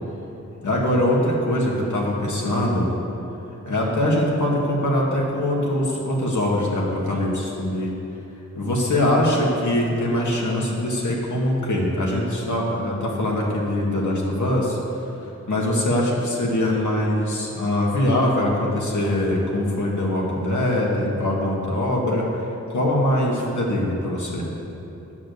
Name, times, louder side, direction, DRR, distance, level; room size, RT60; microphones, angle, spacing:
voice 1, 0.6-2.9 3.6-7.9 8.6-14.8 15.5-22.4 22.7-24.5, left 1 dB, 75° left, -2 dB, 2.1 m, -22 dB
9.7 x 6.9 x 8.1 m, 3.0 s
wide cardioid pair, 85°, 30 cm